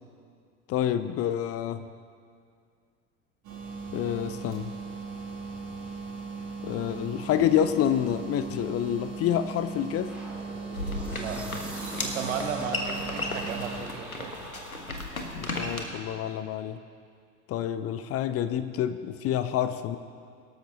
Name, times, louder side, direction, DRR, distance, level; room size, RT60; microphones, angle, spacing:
voice 1, 0.7-1.8 3.9-4.7 6.6-10.2 15.3-16.8 17.5-20.0, left 10 dB, 35° left, 12 dB, 0.7 m, -28 dB
sound 1, 3.4-13.8, right 4 dB, 45° right, 3.0 m, -38 dB
sound 2, 10.1-15.1, right 1 dB, 5° right, 3.8 m, -43 dB
sound 3, 10.7-15.8, left 2 dB, 90° left, 1.4 m, -35 dB
voice 2, 11.1-11.5 12.0-14.4, right 6 dB, 65° right, 4 dB, 1.8 m, -34 dB
23.0 x 13.0 x 2.9 m, 2.2 s
figure-of-eight pair, 70°, 41 cm